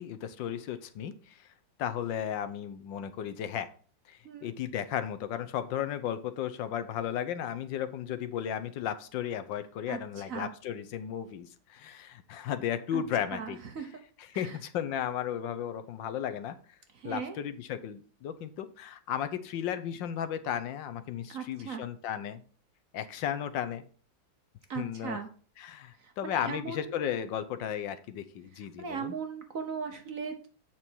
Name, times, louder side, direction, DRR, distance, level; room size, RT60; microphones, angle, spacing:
voice 1, 0.0-1.4 1.8-3.7 4.1-13.6 14.2-16.6 17.0-22.4 22.9-23.8 24.7-25.2 25.6-29.2, left 9 dB, 75° left, 11 dB, 1.4 m, -35 dB
voice 2, 13.3-13.9 14.3-14.6 16.9-17.4 21.3-21.9 24.7-25.3 26.0-26.9 28.8-30.5, right 6 dB, 50° right, 6 dB, 1.2 m, -38 dB
8.1 x 6.0 x 4.6 m, 0.42 s
omnidirectional pair, 2.1 m